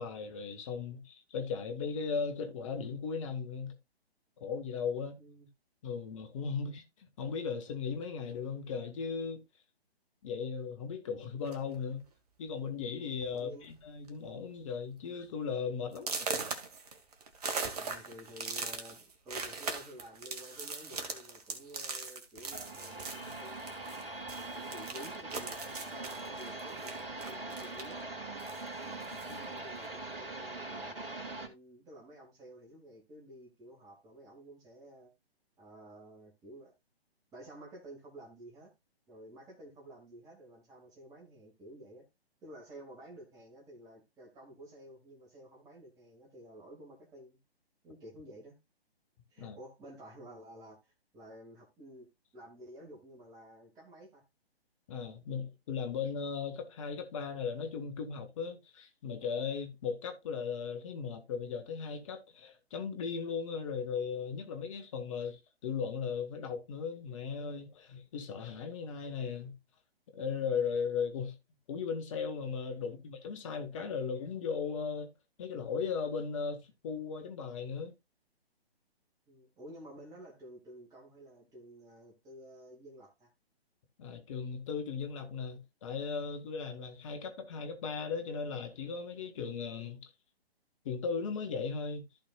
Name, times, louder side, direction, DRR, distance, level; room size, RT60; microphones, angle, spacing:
voice 1, 0.0-3.8 4.4-5.2 5.8-9.4 10.2-12.0 12.4-16.3 29.3-29.5 49.4-49.6 54.9-69.6 70.1-71.4 71.7-75.1 75.4-77.9 84.0-90.1 90.9-92.0, left 6 dB, 30° left, 1.7 m, -37 dB
voice 2, 5.2-5.5 6.5-6.6 13.3-13.7 17.8-23.7 24.4-28.0 29.5-35.1 35.6-36.7 37.3-38.7 39.1-42.1 42.4-47.4 47.8-48.6 49.3-52.1 52.3-54.2 72.8-72.9 79.3-83.3, right 1 dB, 10° right, 2.3 m, -52 dB
sound 1, 11.4-11.8 12.6-12.7 13.1-13.3 13.6-14.1 14.5-14.6 15.1-15.2 15.9-24.0 24.3-28.0 28.4-29.4, right 4 dB, 40° right, 1.8 m, -40 dB
sound 2, 22.4-31.5, right 2 dB, 60° right, 2.7 m, -42 dB
14.5 x 5.0 x 2.4 m
figure-of-eight pair, 135°, 32 cm